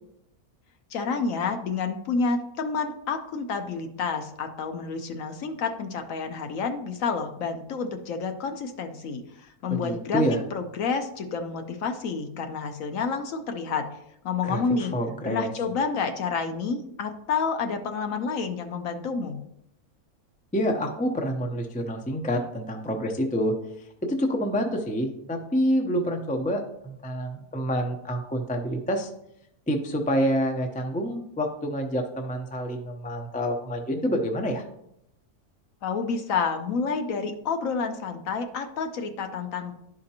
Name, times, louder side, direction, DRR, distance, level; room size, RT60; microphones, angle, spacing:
voice 1, 0.9-10.2 10.5-13.9 14.2-14.9 15.2-19.4 35.8-39.7, left 5 dB, 65° left, 6 dB, 1.1 m, -29 dB
voice 2, 9.7-10.4 14.4-14.6 14.9-15.5 20.5-23.5 24.1-29.1 29.7-34.6, equal, 10° left, 3 dB, 0.4 m, -27 dB
11.5 x 5.0 x 2.9 m, 0.78 s
omnidirectional pair, 1.6 m